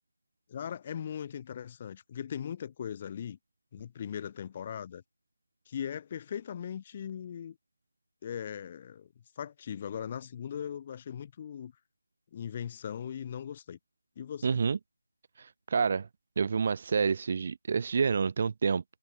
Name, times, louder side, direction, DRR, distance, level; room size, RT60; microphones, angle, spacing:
voice 1, 0.5-3.4 3.7-5.0 5.7-7.6 8.2-9.1 9.4-11.7 12.3-13.8 14.2-14.5, left 8 dB, 20° left, 3.5 m, -39 dB
voice 2, 14.4-14.8 15.4-16.1 16.4-18.8, right 5 dB, 30° right, 0.7 m, -28 dB
figure-of-eight pair, 165°, 0 cm